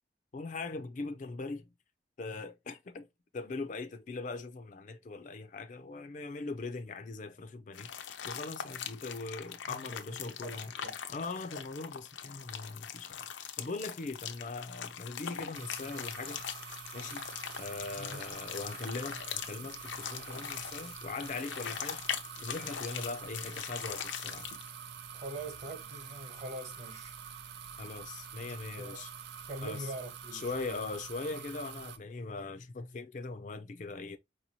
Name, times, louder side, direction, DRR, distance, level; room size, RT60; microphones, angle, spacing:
voice 1, 0.3-1.7 2.2-3.1 3.3-10.7 11.1-16.4 16.9-17.3 17.6-22.0 22.4-24.5 27.8-29.1 29.6-29.9 30.3-34.2, left 3 dB, 40° left, 0.4 m, -40 dB
sound 1, 7.7-24.7, left 8 dB, 85° left, 0.6 m, -41 dB
voice 2, 10.2-10.9 18.0-18.3 25.1-27.2 28.5-29.0 29.5-30.9, right 1 dB, 40° right, 1.0 m, -44 dB
sound 2, 15.5-32.0, right 7 dB, 70° right, 0.5 m, -46 dB
4.8 x 2.6 x 2.8 m
head